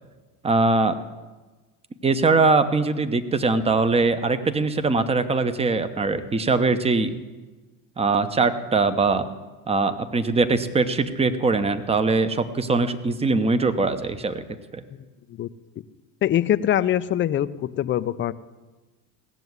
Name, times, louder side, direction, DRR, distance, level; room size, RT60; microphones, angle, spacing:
voice 1, 0.4-1.0 2.0-7.1 8.0-9.3 9.7-14.4 14.7-14.8, right 3 dB, 15° right, 11 dB, 0.8 m, -22 dB
voice 2, 14.9-15.5 16.2-18.3, left 11 dB, 25° left, 13 dB, 0.5 m, -24 dB
17.5 x 7.0 x 9.4 m, 1.2 s
supercardioid pair, 120°, 44 cm